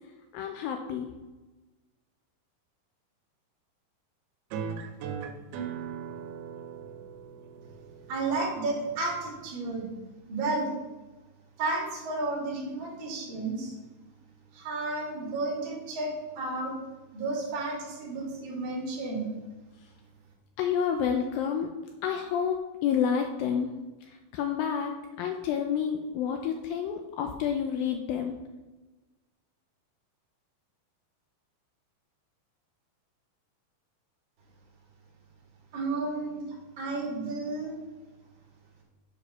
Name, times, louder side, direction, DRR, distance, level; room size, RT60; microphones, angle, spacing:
voice 1, 0.3-1.1 20.6-21.7 22.0-23.7 24.0-28.4, left 7 dB, 85° left, 4 dB, 2.1 m, -29 dB
sound 1, 4.5-9.5, right 7 dB, 80° right, 2.6 m, -39 dB
voice 2, 8.1-9.9 10.3-10.7 11.6-13.7 14.5-16.7 17.1-19.3 35.7-36.4 36.8-37.7, right 2 dB, 40° right, -2 dB, 2.0 m, -32 dB
6.9 x 4.9 x 5.6 m, 1.2 s
omnidirectional pair, 4.5 m